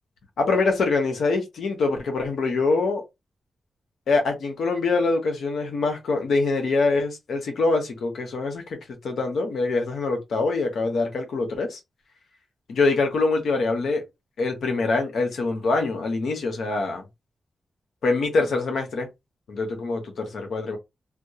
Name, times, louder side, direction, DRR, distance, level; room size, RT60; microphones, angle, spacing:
voice 1, 0.4-3.0 4.1-11.8 12.7-14.0 14.4-17.0 18.0-19.1 19.5-20.8, left 3 dB, 85° left, 0.9 m, -24 dB
2.3 x 2.2 x 2.8 m
cardioid pair, 70°, 0 cm